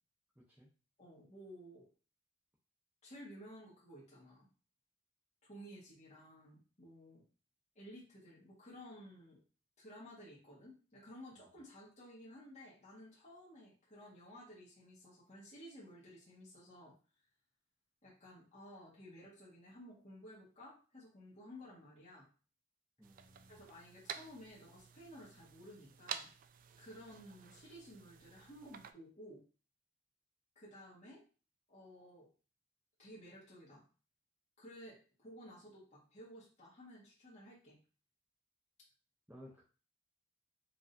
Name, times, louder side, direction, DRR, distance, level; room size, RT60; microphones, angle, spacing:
voice 1, 0.3-0.7 11.3-11.5 23.0-23.6 39.3-39.6, equal, 10° right, -6 dB, 0.9 m, -58 dB
voice 2, 1.0-1.9 3.0-4.5 5.4-7.2 7.7-9.4 9.8-16.9 18.0-22.3 23.5-26.3 26.8-29.4 30.5-31.2 31.7-32.3 33.0-33.8 34.6-37.8, equal, 40° left, -7 dB, 1.5 m, -55 dB
sound 1, 23.0-28.9, right 8 dB, 45° right, 0.3 m, -50 dB
4.8 x 2.9 x 2.6 m, 0.36 s
head